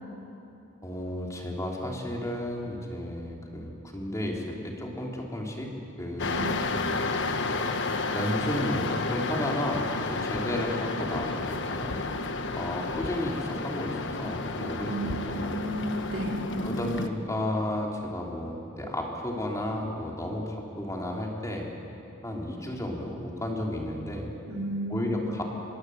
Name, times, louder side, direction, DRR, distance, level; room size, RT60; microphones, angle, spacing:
voice 1, 0.8-5.7 6.0-7.0 8.1-11.9 12.5-15.6 16.6-21.7 22.2-24.3 24.9-25.4, left 1 dB, 15° left, -1 dB, 3.4 m, -33 dB
sound 1, 6.2-17.1, left 3 dB, 60° left, 1.3 m, -31 dB
voice 2, 14.7-16.4 24.5-25.2, right 1 dB, 85° right, -1 dB, 4.4 m, -33 dB
26.0 x 21.5 x 8.0 m, 2.9 s
head